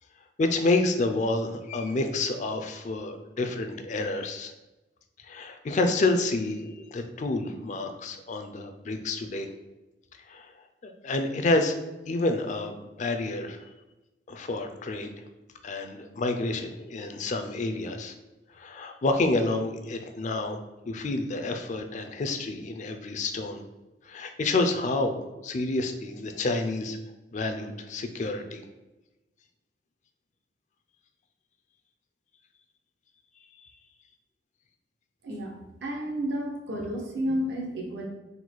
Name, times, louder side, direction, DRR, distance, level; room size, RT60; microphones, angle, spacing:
voice 1, 0.4-4.5 5.2-9.5 10.3-10.5 11.0-11.8 12.1-13.6 14.3-15.1 15.6-18.1 18.5-20.6 20.9-23.6 24.1-27.0 27.3-28.6, left 2 dB, 40° left, 6 dB, 0.4 m, -29 dB
voice 2, 35.8-38.1, equal, 70° right, 0 dB, 0.9 m, -31 dB
3.9 x 2.2 x 4.5 m, 1.0 s
head